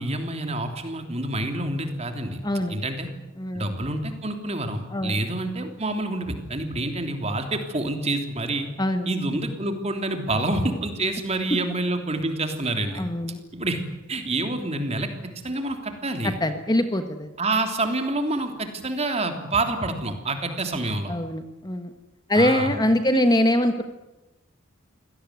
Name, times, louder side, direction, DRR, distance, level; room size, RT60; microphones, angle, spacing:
voice 1, 0.0-2.4 2.7-3.1 3.5-8.7 9.1-13.1 13.5-13.8 14.1-15.1 15.4-16.3 17.4-21.1 22.3-22.7, right 2 dB, 30° right, 6 dB, 3.3 m, -27 dB
voice 2, 2.4-2.7 3.4-3.7 4.9-5.2 8.8-9.1 12.9-13.4 16.2-17.3 21.1-21.9 22.3-23.8, left 1 dB, 20° left, 8 dB, 1.2 m, -23 dB
25.5 x 18.0 x 9.5 m, 1.1 s
head